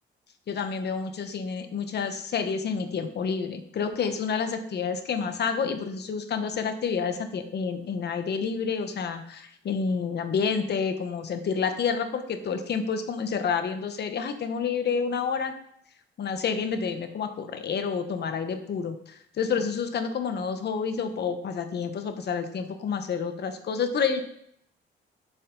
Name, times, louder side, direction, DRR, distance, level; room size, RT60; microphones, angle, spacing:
voice 1, 0.5-15.5 16.2-24.2, left 6 dB, 55° left, 8 dB, 1.0 m, -29 dB
7.0 x 6.3 x 3.9 m, 0.70 s
cardioid pair, 90°, 20 cm